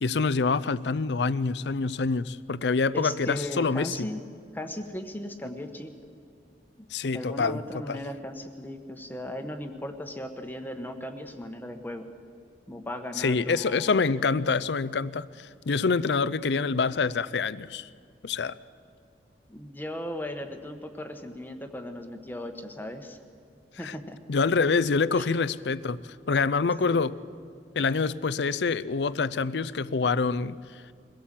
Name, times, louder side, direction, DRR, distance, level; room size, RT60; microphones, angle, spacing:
voice 1, 0.0-4.1 6.9-8.0 13.2-17.9 18.2-18.6 23.8-24.0 24.3-26.0 26.3-27.1 27.8-30.6, left 4 dB, 75° left, 0.5 m, -26 dB
voice 2, 2.9-4.2 4.5-6.0 7.1-12.1 12.7-13.9 19.5-23.2 23.8-24.2 25.1-25.3 26.8-27.0, left 1 dB, 10° left, 1.1 m, -37 dB
23.0 x 17.0 x 7.5 m
head